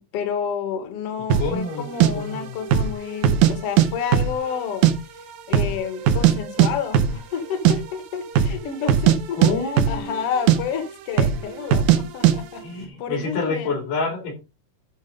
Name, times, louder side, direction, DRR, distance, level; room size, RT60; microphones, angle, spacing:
voice 1, 0.0-4.9 5.5-9.4 9.9-13.8, left 7 dB, 55° left, 2.0 m, -30 dB
voice 2, 1.3-1.8 2.1-2.5 9.4-10.2 12.6-14.3, left 3 dB, 85° left, 5.0 m, -28 dB
sound 1, 1.3-1.5 2.0-2.1 2.6-2.9 3.2-3.9 4.1-4.9 5.2-5.3 5.5-6.3 6.6-6.7 6.9-7.2 7.5-7.8 8.3-8.6 8.9-9.2 9.4-10.2 10.5-10.6 11.2-11.4 11.7-12.0 12.2-12.4, right 10 dB, 75° right, 2.3 m, -17 dB
12.0 x 4.3 x 5.2 m
omnidirectional pair, 3.7 m